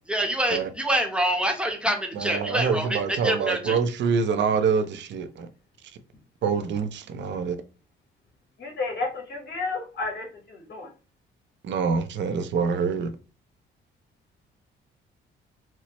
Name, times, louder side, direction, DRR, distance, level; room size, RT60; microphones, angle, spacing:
voice 1, 0.1-3.8, right 1 dB, 5° right, 0.9 m, -26 dB
voice 2, 2.2-5.5 6.4-7.6 11.6-13.1, right 6 dB, 65° right, 0.6 m, -25 dB
voice 3, 8.6-10.9, left 3 dB, 60° left, 1.5 m, -32 dB
4.3 x 2.0 x 3.0 m
cardioid pair, 90°, 20 cm